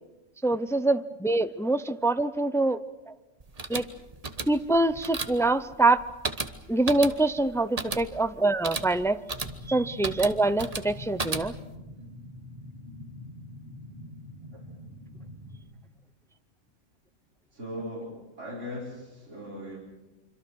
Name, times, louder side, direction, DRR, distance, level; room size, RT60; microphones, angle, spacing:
voice 1, 0.4-2.8 3.7-3.8 4.5-6.0 6.7-9.2 9.7-11.5, right 2 dB, 5° left, 12 dB, 0.3 m, -24 dB
sound 1, 3.4-11.8, right 3 dB, 30° right, 1.3 m, -36 dB
sound 2, 9.4-15.6, left 1 dB, 15° right, 5.1 m, -44 dB
voice 2, 17.5-19.8, equal, 65° right, -5 dB, 4.8 m, -39 dB
26.0 x 25.5 x 6.4 m, 1.1 s
omnidirectional pair, 1.3 m